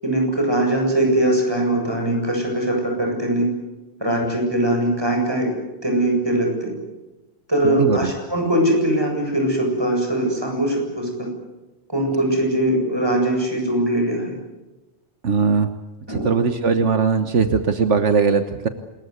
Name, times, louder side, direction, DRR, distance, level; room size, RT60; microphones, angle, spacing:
voice 1, 0.0-3.5 4.0-5.6 5.8-6.7 7.5-11.3 11.9-14.3 16.1-16.3, right 1 dB, 20° right, 2 dB, 8.0 m, -21 dB
voice 2, 7.6-8.1 15.2-15.7 16.1-18.7, right 5 dB, 75° right, 9 dB, 1.6 m, -19 dB
27.5 x 21.5 x 8.1 m, 1.0 s
omnidirectional pair, 1.2 m